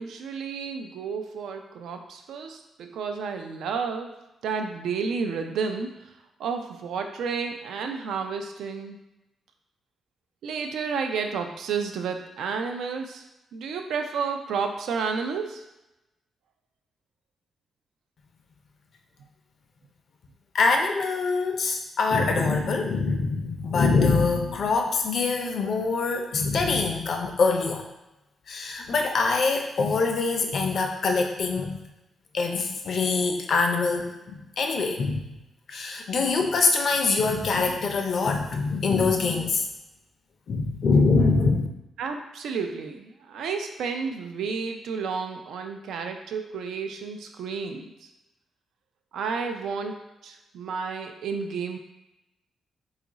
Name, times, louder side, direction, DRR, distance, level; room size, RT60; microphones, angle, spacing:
voice 1, 0.0-4.1 4.4-5.9 6.4-9.0 10.4-13.2 13.5-15.6 42.0-47.9 49.1-50.0 50.2-51.8, right 5 dB, 85° right, 5 dB, 0.4 m, -31 dB
voice 2, 20.5-27.9 28.5-31.8 32.3-35.4 35.7-39.7 40.5-41.7, left 4 dB, 55° left, 3 dB, 0.5 m, -24 dB
3.0 x 2.4 x 3.9 m, 0.94 s
cardioid pair, 115°, 0 cm